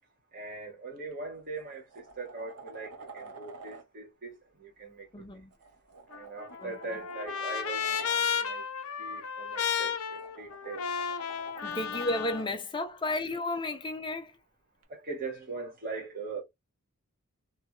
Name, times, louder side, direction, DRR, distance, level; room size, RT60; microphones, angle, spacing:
voice 1, 0.3-5.1 6.1-8.6 9.0-10.8 11.6-11.8 14.9-16.4, right 3 dB, 40° right, 1.5 m, -41 dB
sound 1, 1.0-1.1 1.6-3.8 5.5-8.2 9.7-12.5 14.8-14.9, right 3 dB, 80° right, 0.8 m, -49 dB
voice 2, 5.1-5.5 6.6-7.0 11.6-14.4, left 2 dB, 20° left, 0.5 m, -33 dB
Trumpet, 6.1-12.4, left 7 dB, 65° left, 0.5 m, -33 dB
2.8 x 2.7 x 2.3 m
head